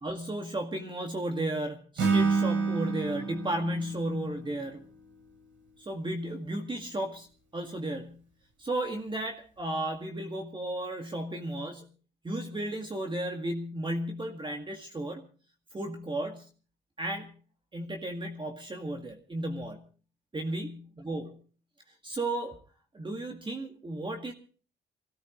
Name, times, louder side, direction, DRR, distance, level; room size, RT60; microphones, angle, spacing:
voice 1, 0.0-4.8 5.8-7.3 7.5-8.2 8.6-11.9 12.2-15.3 15.7-16.5 17.0-17.3 17.7-19.8 20.3-21.4 22.0-22.6 22.9-24.3, right 1 dB, 25° right, 3 dB, 1.9 m, -34 dB
Acoustic guitar / Strum, 2.0-5.2, right 4 dB, 75° right, 6.4 m, -29 dB
24.0 x 17.0 x 3.1 m, 0.39 s
cardioid pair, 90°, 20 cm